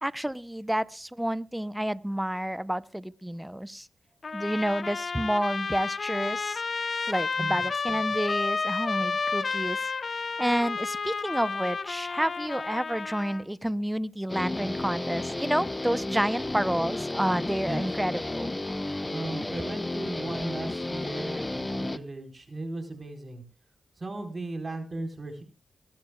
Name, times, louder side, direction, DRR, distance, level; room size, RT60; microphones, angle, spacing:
voice 1, 0.0-3.9 4.3-6.6 7.1-9.8 10.1-18.5, equal, 5° right, 18 dB, 0.7 m, -29 dB
Trumpet, 4.2-13.4, left 4 dB, 55° left, 0.8 m, -31 dB
Guitar, 14.3-22.0, left 2 dB, 25° left, 0.9 m, -32 dB
voice 2, 19.1-23.4 24.0-25.4, right 2 dB, 40° right, 4 dB, 4.3 m, -36 dB
24.0 x 11.5 x 2.3 m, 0.34 s
supercardioid pair, 45°, 0 cm